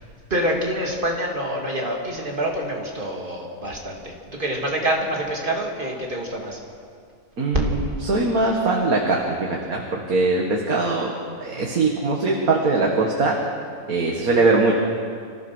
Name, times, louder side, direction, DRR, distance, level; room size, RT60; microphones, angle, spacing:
voice 1, 0.3-6.6, right 1 dB, 35° right, -1 dB, 3.2 m, -26 dB
voice 2, 7.4-11.1 11.4-13.4 13.9-14.7, right 3 dB, 65° right, 0 dB, 2.2 m, -21 dB
27.0 x 15.0 x 6.3 m, 2.2 s
omnidirectional pair, 1.6 m